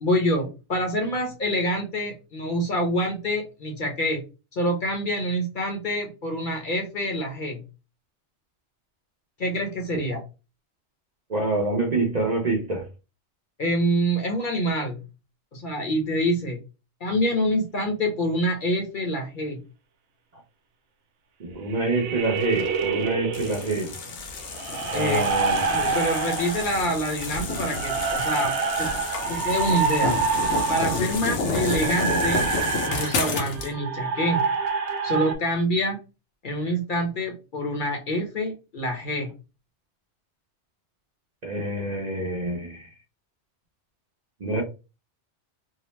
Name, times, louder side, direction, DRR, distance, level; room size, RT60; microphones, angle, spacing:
voice 1, 0.0-4.2 4.5-7.6 9.4-10.2 13.6-15.0 15.5-16.6 17.0-19.6 24.9-28.9 29.3-30.2 30.7-32.5 32.8-34.4 35.0-36.0 36.4-39.3, equal, 50° left, 0.8 m, -26 dB
voice 2, 11.3-12.9 21.4-23.9 24.9-25.6 33.3-33.4 41.4-42.9 44.4-44.6, right 2 dB, 45° right, 0.7 m, -26 dB
sound 1, 21.7-23.8 24.5-35.3, right 5 dB, 75° right, 0.9 m, -27 dB
sound 2, 23.3-33.7, left 3 dB, 75° left, 1.0 m, -30 dB
2.8 x 2.0 x 3.1 m
omnidirectional pair, 1.2 m